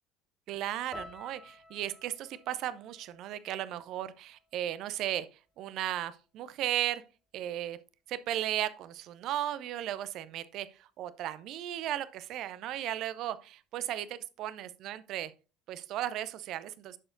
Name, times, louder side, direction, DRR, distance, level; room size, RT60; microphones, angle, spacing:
voice 1, 0.5-7.0 7.3-7.8 8.1-15.3 15.7-17.0, right 12 dB, 50° right, 0.6 m, -36 dB
sound 1, 0.9-5.1 5.4-6.2 6.7-7.0, left 1 dB, 5° left, 2.0 m, -53 dB
11.0 x 6.8 x 2.6 m
figure-of-eight pair, 60°, 0 cm